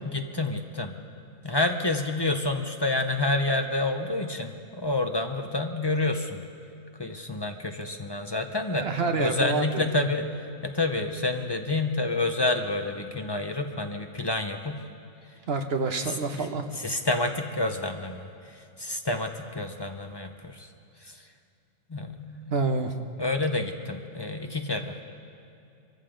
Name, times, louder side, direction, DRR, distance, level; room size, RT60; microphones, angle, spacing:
voice 1, 0.0-0.9 1.4-6.4 7.0-8.9 9.2-10.4 10.6-14.8 16.0-16.5 16.8-20.7 21.0-21.2 21.9-22.5 23.2-25.0, left 2 dB, 30° left, 5 dB, 0.5 m, -29 dB
voice 2, 8.7-9.8 15.5-16.6 22.5-22.9, right 4 dB, 55° right, 6 dB, 1.0 m, -27 dB
23.5 x 14.5 x 3.8 m, 2.6 s
omnidirectional pair, 1.4 m